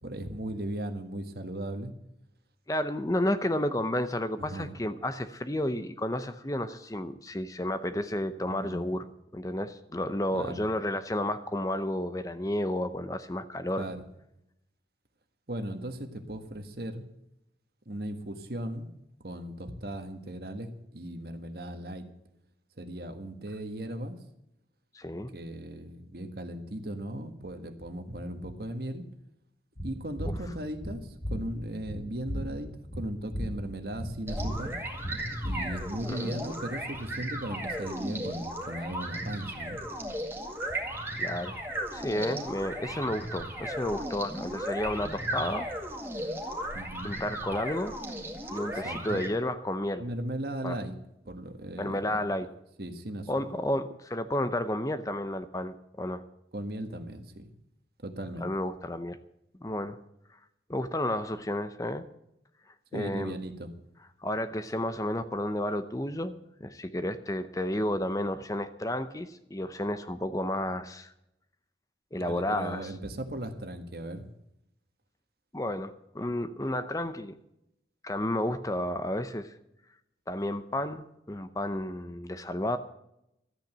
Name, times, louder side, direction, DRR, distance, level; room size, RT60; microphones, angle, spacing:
voice 1, 0.0-1.9 4.4-4.7 8.4-9.0 10.3-10.6 13.8-14.0 15.5-17.0 17.8-18.9 19.2-22.1 22.8-24.1 25.3-29.0 29.8-34.8 35.4-39.8 46.7-47.1 48.7-49.2 50.0-50.9 51.2-52.3 52.8-53.4 56.5-57.5 58.0-58.5 62.9-63.7 72.2-74.2, right 1 dB, 55° right, 7 dB, 1.6 m, -37 dB
voice 2, 2.7-9.1 9.3-13.8 24.9-25.3 36.1-36.3 41.2-41.5 41.9-45.7 47.0-47.9 48.5-50.0 50.6-50.8 51.8-52.5 53.3-56.2 58.4-59.2 59.6-60.0 60.7-62.0 62.9-63.4 64.2-66.4 66.6-71.1 72.1-72.9 75.5-77.3 78.0-79.5 80.3-82.8, left 1 dB, 20° left, 11 dB, 0.6 m, -31 dB
sound 1, 29.8-36.0, equal, 60° left, 3.1 m, -36 dB
sound 2, 34.3-49.3, right 1 dB, 15° right, 2.0 m, -36 dB
13.5 x 9.0 x 7.9 m, 0.82 s
head